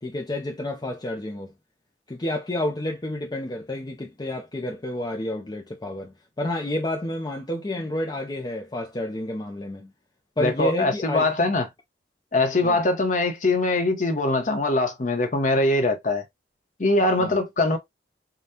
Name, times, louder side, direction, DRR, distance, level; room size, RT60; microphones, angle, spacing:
voice 1, 0.0-1.5 2.1-9.9 10.4-11.3 12.6-12.8 17.2-17.4, left 1 dB, 25° left, 0.5 m, -30 dB
voice 2, 10.4-11.6 12.3-16.2 16.8-17.8, left 2 dB, 45° left, 1.0 m, -22 dB
5.1 x 2.3 x 2.8 m
head